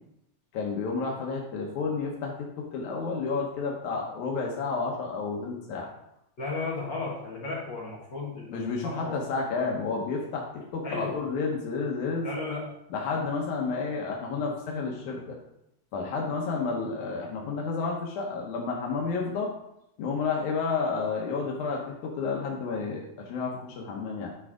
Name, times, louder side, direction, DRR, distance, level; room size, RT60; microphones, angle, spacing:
voice 1, 0.5-5.9 8.5-12.3 12.9-15.4 15.9-19.5 20.0-24.3, left 4 dB, 90° left, -1 dB, 2.4 m, -31 dB
voice 2, 6.4-9.3 10.8-11.2 12.2-12.7, left 3 dB, 45° left, -4 dB, 1.9 m, -34 dB
10.0 x 3.6 x 4.9 m, 0.82 s
omnidirectional pair, 3.3 m